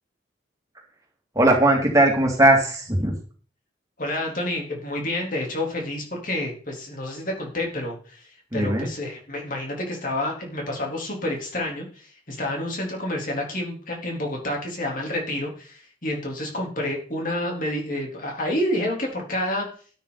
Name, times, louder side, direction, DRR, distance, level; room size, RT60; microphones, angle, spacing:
voice 1, 1.3-3.2 8.5-8.9, right 1 dB, 20° right, 0 dB, 2.8 m, -19 dB
voice 2, 4.0-19.7, left 1 dB, 45° left, 0 dB, 3.7 m, -29 dB
12.5 x 10.0 x 4.2 m, 0.43 s
head